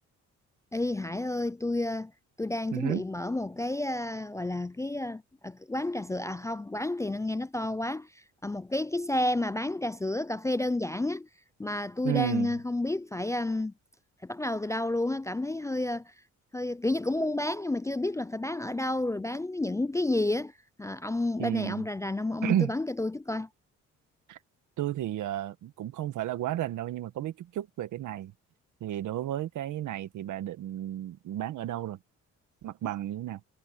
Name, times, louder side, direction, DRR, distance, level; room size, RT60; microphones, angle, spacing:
voice 1, 0.7-2.1 2.4-11.3 11.6-13.7 14.2-16.1 16.5-20.5 20.8-23.5, left 2 dB, 10° left, 0.4 m, -30 dB
voice 2, 2.7-3.0 12.0-12.6 21.4-21.8 22.4-22.7 24.3-24.4 24.8-28.3 28.8-32.0 32.6-33.4, right 12 dB, 80° right, 1.6 m, -32 dB
cardioid pair, 90°, 30 cm